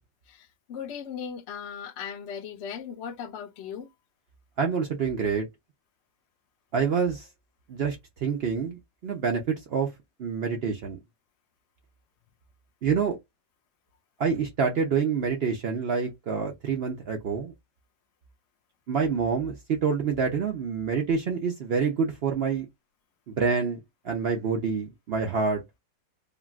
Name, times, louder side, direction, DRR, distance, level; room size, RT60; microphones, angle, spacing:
voice 1, 0.3-3.9, left 7 dB, 70° left, 0.6 m, -38 dB
voice 2, 4.6-5.5 6.7-7.3 7.7-8.0 8.2-9.9 10.2-11.0 12.8-13.2 14.2-17.5 18.9-22.7 23.3-23.8 24.0-25.6, right 5 dB, 80° right, 0.5 m, -27 dB
3.6 x 2.3 x 2.3 m
omnidirectional pair, 1.9 m